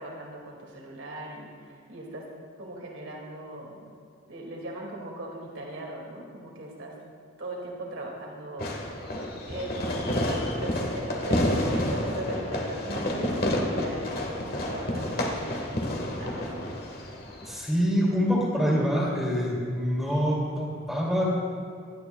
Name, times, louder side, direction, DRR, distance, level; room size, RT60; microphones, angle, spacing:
voice 1, 0.0-2.3 2.6-3.9 4.3-6.9 7.4-9.0 9.5-16.7, right 1 dB, 85° right, -1 dB, 2.2 m, -39 dB
Fireworks, 8.6-17.6, left 1 dB, 50° left, 1.5 m, -29 dB
voice 2, 17.5-21.3, equal, ahead, -5 dB, 2.4 m, -25 dB
20.0 x 12.5 x 2.3 m, 2.3 s
head